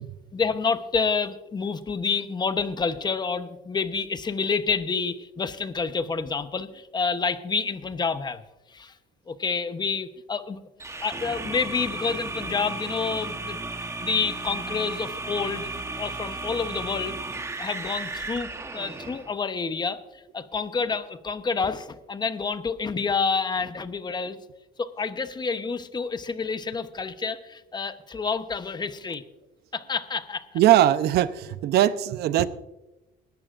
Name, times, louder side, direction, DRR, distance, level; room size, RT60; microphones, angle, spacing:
voice 1, 0.3-8.4 8.7-8.9 9.3-10.6 11.0-13.6 14.0-15.7 16.0-17.2 17.6-24.4 24.8-29.2 29.7-30.6, left 5 dB, 25° left, 11 dB, 0.9 m, -28 dB
sound 1, 10.8-19.3, right 3 dB, 15° right, 1.1 m, -34 dB
voice 2, 30.5-32.5, right 12 dB, 75° right, 14 dB, 0.7 m, -20 dB
19.5 x 13.0 x 2.5 m, 0.97 s
cardioid pair, 110°, 17 cm